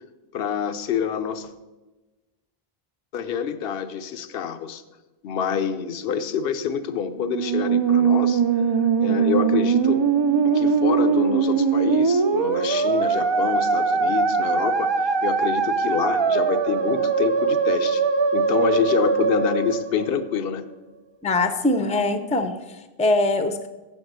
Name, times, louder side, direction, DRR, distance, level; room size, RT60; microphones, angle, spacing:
voice 1, 0.3-1.5 3.1-4.8 5.2-8.4 9.0-10.0 10.4-18.0 18.3-20.6, left 7 dB, 70° left, 10 dB, 0.9 m, -27 dB
Musical instrument, 7.2-20.6, right 5 dB, 45° right, 0.3 m, -21 dB
voice 2, 21.2-23.7, left 2 dB, 10° left, 8 dB, 0.5 m, -23 dB
7.6 x 7.2 x 7.9 m, 1.1 s
omnidirectional pair, 1.0 m